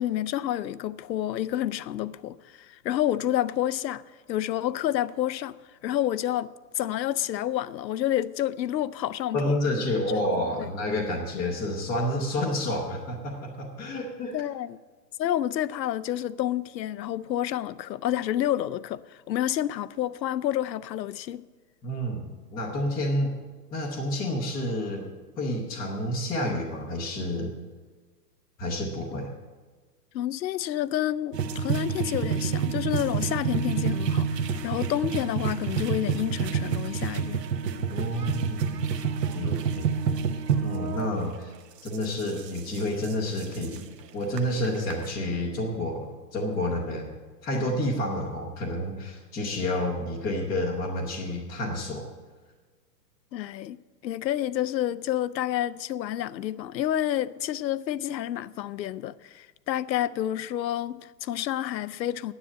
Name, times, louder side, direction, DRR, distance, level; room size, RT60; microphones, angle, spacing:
voice 1, 0.0-4.0 4.3-5.5 5.8-9.6 10.3-10.7 14.3-14.8 15.2-21.4 30.1-37.4 53.3-53.8 54.0-62.3, left 12 dB, 90° left, 0.6 m, -29 dB
voice 2, 9.3-14.4 21.8-23.4 23.7-25.1 25.4-27.5 28.6-29.3 37.9-39.1 39.3-39.9 40.6-41.5 41.8-43.9 44.1-46.1 46.3-47.2 47.4-52.1, left 1 dB, 10° left, 0.5 m, -29 dB
sound 1, 31.3-41.1 41.9-43.8 44.4-44.5 44.6-45.1, right 6 dB, 75° right, 1.1 m, -28 dB
9.9 x 7.9 x 8.5 m
hypercardioid pair, 145°, 50 cm